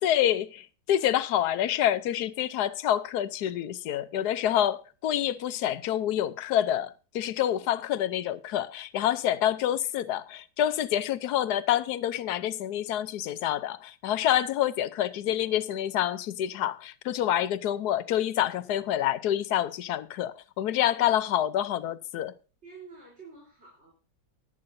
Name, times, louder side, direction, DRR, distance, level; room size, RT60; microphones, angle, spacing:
voice 1, 0.0-22.3, left 11 dB, 65° left, 1.1 m, -27 dB
voice 2, 20.8-21.4 22.6-23.9, right 4 dB, 35° right, 3.9 m, -49 dB
19.5 x 8.7 x 2.6 m
omnidirectional pair, 2.1 m